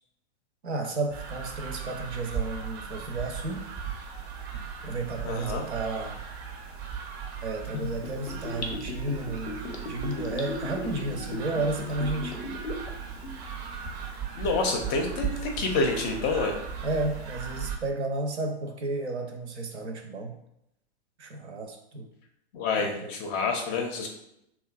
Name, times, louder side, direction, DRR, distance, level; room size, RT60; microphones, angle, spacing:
voice 1, 0.6-3.6 4.8-6.2 7.4-12.5 14.7-15.0 16.8-20.4 21.2-22.1 22.8-23.1, right 2 dB, 85° right, 4 dB, 0.6 m, -32 dB
sound 1, 1.1-17.8, right 7 dB, 40° right, 0.4 m, -37 dB
voice 2, 5.2-5.7 14.4-16.5 22.5-24.1, left 3 dB, 30° left, 3 dB, 0.4 m, -28 dB
Gurgling / Bathtub (filling or washing), 7.7-12.9 13.2-13.3, left 3 dB, 80° left, 0.5 m, -36 dB
2.8 x 2.3 x 2.2 m, 0.81 s
figure-of-eight pair, 100°, 33 cm